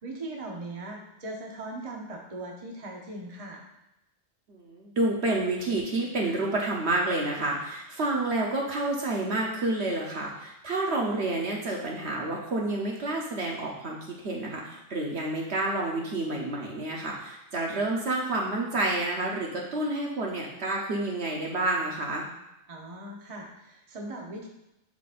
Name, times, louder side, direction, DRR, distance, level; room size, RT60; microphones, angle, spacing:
voice 1, 0.0-3.6 22.7-24.5, right 2 dB, 30° right, -1 dB, 1.0 m, -39 dB
voice 2, 4.5-22.2, right 2 dB, 60° right, -2 dB, 1.1 m, -29 dB
11.0 x 3.9 x 2.5 m, 0.88 s
omnidirectional pair, 1.3 m